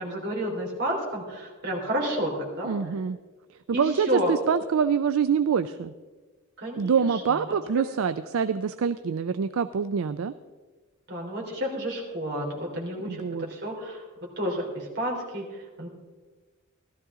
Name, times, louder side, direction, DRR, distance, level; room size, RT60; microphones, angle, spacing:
voice 1, 0.0-2.7 3.7-4.3 6.6-7.5 11.1-14.0 14.4-15.9, equal, 55° right, -1 dB, 3.3 m, -31 dB
voice 2, 2.6-3.2 3.5-5.9 6.8-10.3 13.1-13.5, right 6 dB, 75° right, 12 dB, 0.4 m, -25 dB
15.5 x 13.0 x 3.7 m, 1.3 s
head